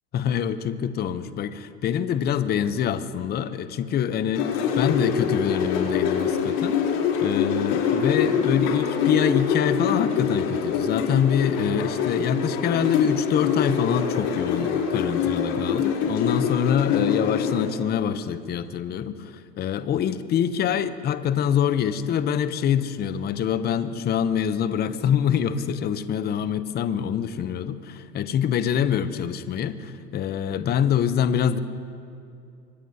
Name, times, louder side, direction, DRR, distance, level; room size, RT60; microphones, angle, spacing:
voice 1, 0.1-6.8 7.2-31.6, left 8 dB, 20° left, 12 dB, 0.6 m, -25 dB
sound 1, 4.3-17.7, left 7 dB, 55° left, 3.5 m, -25 dB
25.0 x 20.5 x 2.8 m, 2.5 s
hypercardioid pair, 105°, 50 cm